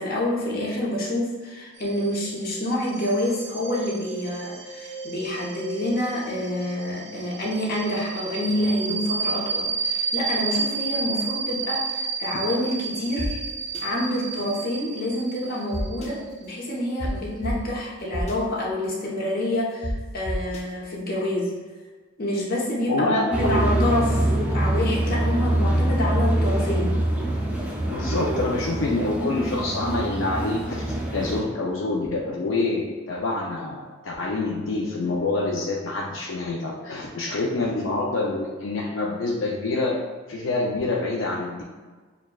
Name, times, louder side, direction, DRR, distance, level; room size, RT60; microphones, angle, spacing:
voice 1, 0.0-13.4 13.8-21.6 22.2-27.0, left 1 dB, 50° left, -5 dB, 1.0 m, -27 dB
sound 1, 1.8-18.0, right 5 dB, 60° right, 0.4 m, -32 dB
sound 2, 13.2-13.3 13.7-13.8 15.7-16.1 17.0-17.1 17.4-17.5 18.1-18.4 19.8-19.9 20.3-20.6, equal, 35° left, 0.6 m, -28 dB
voice 2, 22.9-23.2 27.9-30.9 31.1-40.0 40.3-41.6, left 2 dB, 80° left, -3 dB, 0.5 m, -26 dB
sound 3, 23.3-31.4, right 1 dB, 5° right, 0.5 m, -24 dB
6.5 x 2.3 x 2.3 m, 1.4 s
head